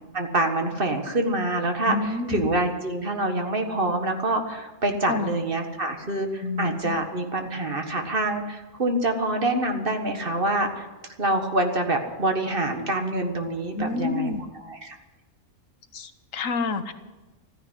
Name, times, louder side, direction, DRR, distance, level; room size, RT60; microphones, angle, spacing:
voice 1, 0.1-10.9 11.2-15.0, right 2 dB, 45° right, 5 dB, 1.7 m, -26 dB
voice 2, 1.9-2.5 5.0-5.3 6.4-7.0 13.7-14.4 15.9-16.9, left 4 dB, 80° left, 10 dB, 1.4 m, -29 dB
14.0 x 10.0 x 9.8 m, 1.2 s
omnidirectional pair, 1.4 m